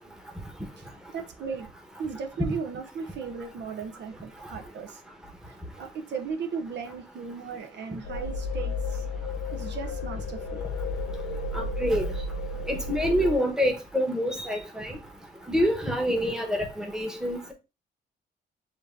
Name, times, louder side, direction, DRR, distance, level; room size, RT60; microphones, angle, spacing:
voice 1, 1.1-1.7 2.0-5.0 5.8-9.1 9.5-10.6, right 5 dB, 65° right, 0.7 m, -36 dB
sound 1, 8.0-13.4, left 3 dB, 65° left, 1.0 m, -32 dB
voice 2, 11.5-12.1 12.7-15.0 15.5-17.5, equal, 5° right, 1.1 m, -26 dB
7.0 x 2.7 x 2.6 m
cardioid pair, 90°, 20 cm